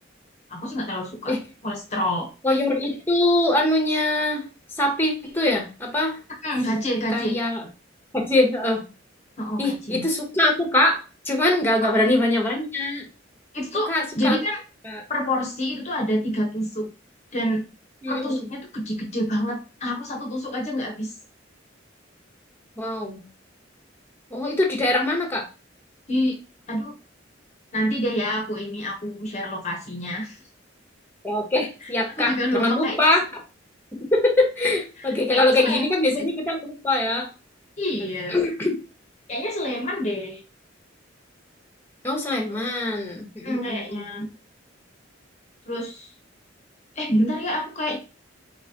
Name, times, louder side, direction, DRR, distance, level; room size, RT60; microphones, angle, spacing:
voice 1, 0.5-1.4 1.6-2.3 6.4-7.4 9.4-10.0 11.8-12.0 13.5-14.6 15.1-16.9 17.3-17.7 18.1-21.1 26.1-26.4 26.7-26.9 27.7-30.4 31.8-33.1 35.0-35.1 35.3-35.8 36.2-36.3 37.8-38.3 39.3-40.4 42.5-42.6 43.4-44.3 45.7-46.1 47.0-48.0, equal, 35° left, 1 dB, 0.9 m, -27 dB
voice 2, 2.4-4.4 4.8-6.2 7.1-7.7 8.1-8.8 9.6-11.0 11.2-13.0 13.9-14.4 14.8-15.0 18.0-18.4 22.8-23.2 24.3-25.5 31.2-33.3 34.1-37.3 38.3-38.7 42.0-44.0, left 2 dB, 10° left, 1 dB, 1.0 m, -23 dB
4.2 x 3.8 x 2.8 m, 0.32 s
head